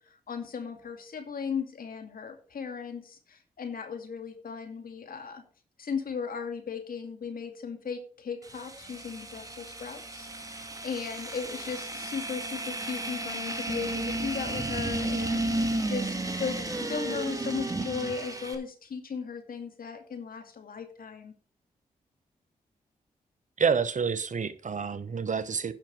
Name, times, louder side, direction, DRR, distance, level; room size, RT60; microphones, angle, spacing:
voice 1, 0.3-5.4 5.8-21.3, left 6 dB, 65° left, 2.3 m, -37 dB
sound 1, 8.4-18.5, right 1 dB, 20° right, 2.4 m, -33 dB
voice 2, 23.6-25.7, right 6 dB, 55° right, 1.1 m, -28 dB
10.5 x 5.9 x 5.9 m
supercardioid pair, 45°, 16 cm